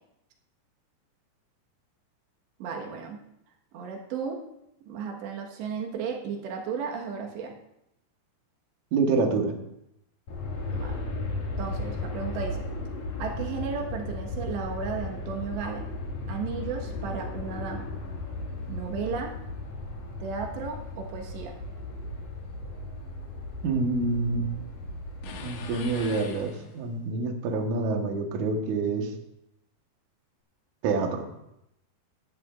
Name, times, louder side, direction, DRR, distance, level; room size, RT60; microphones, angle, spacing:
voice 1, 2.6-3.2 3.7-4.4 4.9-7.5 10.7-11.0 11.6-12.6 13.2-15.9 16.3-17.9 18.7-19.3 20.2-21.5, right 5 dB, 85° right, 1 dB, 3.6 m, -34 dB
voice 2, 8.9-9.5 23.6-24.5 25.4-29.1 30.8-31.3, right 3 dB, 65° right, 3 dB, 2.1 m, -27 dB
Aircraft, 10.3-26.5, left 2 dB, 50° left, 3.1 m, -36 dB
sound 1, 25.2-27.1, left 6 dB, 70° left, 1.9 m, -42 dB
16.0 x 11.0 x 2.4 m, 0.82 s
omnidirectional pair, 4.9 m